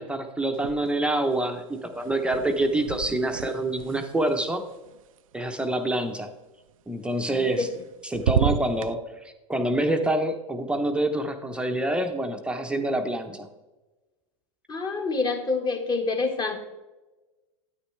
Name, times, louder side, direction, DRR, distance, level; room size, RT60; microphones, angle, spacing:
voice 1, 0.0-4.6 5.3-6.3 6.9-7.7 8.0-13.5, right 1 dB, 5° right, 5 dB, 0.8 m, -26 dB
sound 1, 0.5-1.3 1.5-5.6 7.2-7.9 8.1-8.9, right 9 dB, 85° right, 0.5 m, -31 dB
voice 2, 14.7-16.6, left 3 dB, 25° left, 4 dB, 1.4 m, -27 dB
9.6 x 9.6 x 3.3 m, 1.1 s
hypercardioid pair, 115°, 17 cm